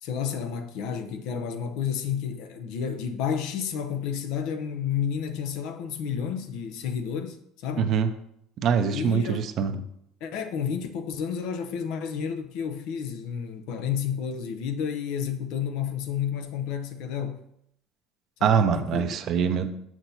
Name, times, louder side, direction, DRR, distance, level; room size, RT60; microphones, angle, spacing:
voice 1, 0.0-7.9 8.9-9.4 10.2-17.4 18.4-19.2, left 7 dB, 70° left, 0.7 m, -31 dB
voice 2, 7.8-8.1 8.6-9.7 18.4-19.7, right 7 dB, 50° right, 0.6 m, -23 dB
6.8 x 6.0 x 2.7 m
supercardioid pair, 100°, 0 cm